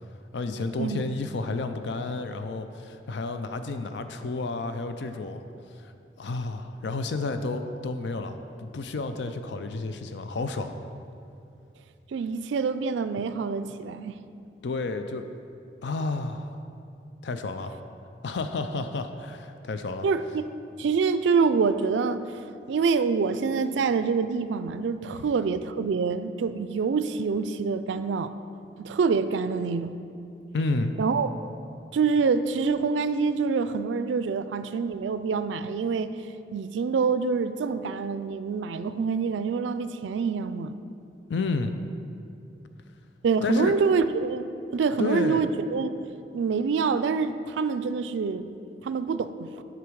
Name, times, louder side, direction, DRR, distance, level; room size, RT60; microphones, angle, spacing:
voice 1, 0.3-5.4 5.7-5.9 6.2-10.8 13.2-13.3 14.6-15.2 15.8-16.6 17.2-17.7 18.2-20.1 25.1-25.3 30.5-30.9 41.3-41.8 43.4-43.7 45.0-45.5, left 3 dB, 75° left, 8 dB, 0.4 m, -31 dB
voice 2, 12.1-14.2 20.0-20.5 20.8-22.2 22.7-28.3 28.8-30.0 31.0-31.3 31.9-36.1 36.5-40.7 43.2-44.5 44.7-46.0 46.3-48.5 48.8-49.6, right 5 dB, 80° right, 12 dB, 0.3 m, -26 dB
8.3 x 6.0 x 4.7 m, 2.5 s
head